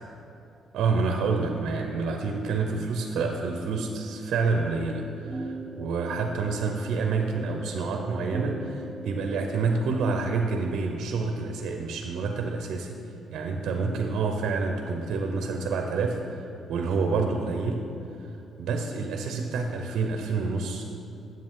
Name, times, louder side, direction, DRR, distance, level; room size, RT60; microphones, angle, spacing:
voice 1, 0.7-13.0 13.3-17.8 18.6-20.8, right 4 dB, 75° right, 3 dB, 0.5 m, -28 dB
sound 1, 5.2-10.2, right 1 dB, 20° left, 1.0 m, -39 dB
7.9 x 7.5 x 3.7 m, 2.7 s
cardioid pair, 90°, 0 cm